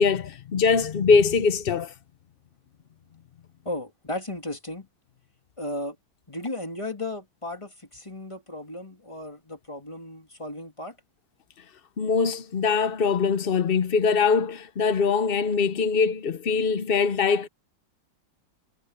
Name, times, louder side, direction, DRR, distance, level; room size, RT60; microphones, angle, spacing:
voice 1, 0.0-1.9 12.0-17.5, left 5 dB, 90° left, 0.5 m, -22 dB
voice 2, 3.6-4.9 5.6-6.0 6.3-11.0, left 1 dB, 15° left, 2.9 m, -35 dB
omnidirectional pair, 2.1 m